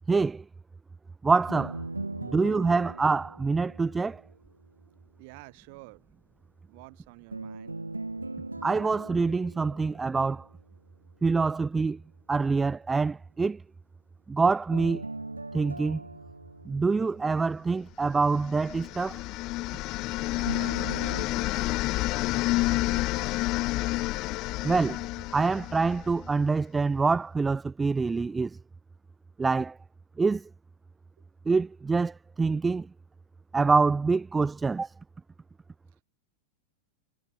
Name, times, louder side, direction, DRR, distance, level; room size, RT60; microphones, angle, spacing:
voice 1, 0.1-0.4 1.2-1.8 2.3-4.2 8.6-10.5 11.2-12.0 12.3-13.6 14.3-15.0 15.5-16.0 16.6-19.2 24.6-25.0 25.3-28.6 29.4-29.8 30.2-30.5 31.5-32.9 33.5-34.9, right 4 dB, 10° right, 0.9 m, -25 dB
sound 1, 1.5-4.6 7.3-10.6 14.7-17.8 20.4-21.2, right 2 dB, 85° right, 7.2 m, -40 dB
voice 2, 2.0-2.7 5.2-6.0 6.7-7.8 20.4-21.8 22.6-23.5, right 27 dB, 45° right, 7.8 m, -50 dB
sound 2, 18.3-26.3, left 20 dB, 40° left, 0.9 m, -29 dB
figure-of-eight pair, 90°, 0 cm